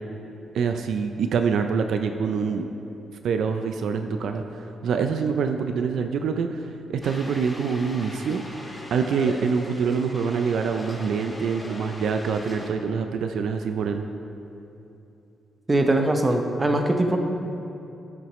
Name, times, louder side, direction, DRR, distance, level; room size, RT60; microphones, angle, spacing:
voice 1, 0.5-2.7 3.2-14.0, right 5 dB, 75° right, 6 dB, 0.4 m, -25 dB
sound 1, 7.0-12.7, left 1 dB, 15° left, 1.0 m, -40 dB
voice 2, 15.7-17.2, right 1 dB, 20° right, 4 dB, 0.7 m, -21 dB
12.5 x 6.0 x 3.1 m, 2.9 s
cardioid pair, 110°, 0 cm